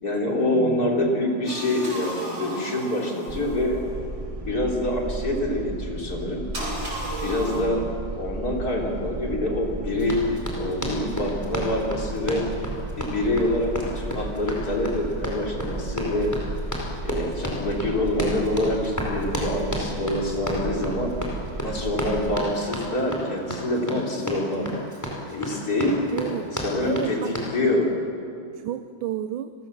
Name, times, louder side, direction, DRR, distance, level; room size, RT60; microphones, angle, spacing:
voice 1, 0.0-3.8 4.4-6.4 7.2-7.9 8.1-12.4 12.9-16.3 17.0-21.1 21.6-24.7 25.3-26.0 26.5-27.9, left 1 dB, 50° left, 0 dB, 3.9 m, -26 dB
voice 2, 0.5-1.2 7.5-8.0 26.1-26.5 26.8-27.3 28.5-29.5, right 11 dB, 90° right, 10 dB, 1.5 m, -32 dB
sound 1, 1.4-3.9 6.5-7.6, equal, 70° right, 8.6 m, -34 dB
sound 2, 3.3-22.4, right 2 dB, 25° right, 0.9 m, -34 dB
Run, 10.0-27.6, equal, 10° left, 4.5 m, -32 dB
30.0 x 20.5 x 7.3 m, 2.5 s
omnidirectional pair, 2.1 m